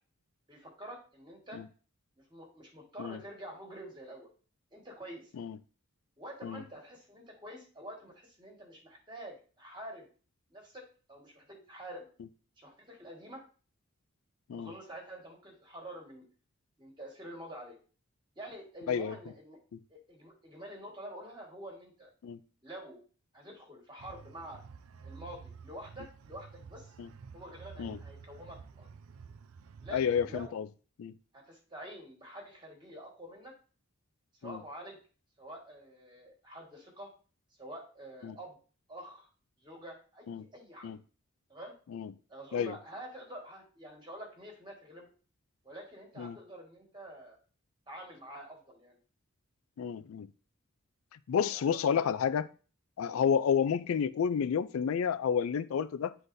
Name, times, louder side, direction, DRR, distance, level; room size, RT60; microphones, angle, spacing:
voice 1, 0.5-1.6 2.2-4.3 4.7-5.3 6.2-10.1 10.5-10.8 11.1-12.1 12.6-13.4 14.5-16.3 16.8-17.8 18.3-19.6 19.9-22.1 22.6-23.0 23.3-24.6 25.0-26.9 27.3-28.9 29.8-30.6 31.3-33.5 34.4-35.0 35.4-37.1 37.6-38.6 38.9-39.3 39.6-41.0 41.5-41.7 42.3-45.1 45.6-47.4 47.9-49.0 51.5-52.1, right 1 dB, 20° right, 1.6 m, -47 dB
sound 1, 24.0-30.5, right 5 dB, 85° right, 0.4 m, -51 dB
voice 2, 29.9-30.7 31.0-31.1 34.4-34.6 38.2-38.4 40.3-40.4 40.8-41.0 41.9-42.1 42.5-42.8 46.2-46.4 49.8-50.3 51.3-52.5 53.0-56.2, left 7 dB, 75° left, 0.3 m, -30 dB
9.6 x 3.9 x 2.6 m
head